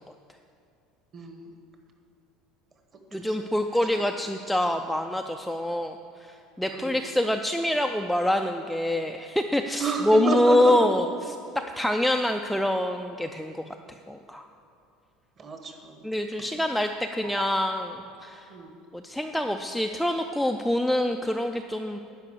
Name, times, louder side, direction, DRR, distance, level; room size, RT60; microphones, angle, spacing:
voice 1, 1.1-1.5 3.1-4.0 6.7-7.0 9.8-10.8 15.4-16.0 17.3-17.4 18.5-18.8, right 3 dB, 25° right, 4 dB, 1.1 m, -32 dB
voice 2, 3.1-13.6 14.1-14.5 16.0-18.5 18.9-22.0, left 1 dB, ahead, 3 dB, 0.3 m, -26 dB
11.5 x 5.3 x 8.4 m, 2.5 s
cardioid pair, 160°, 0 cm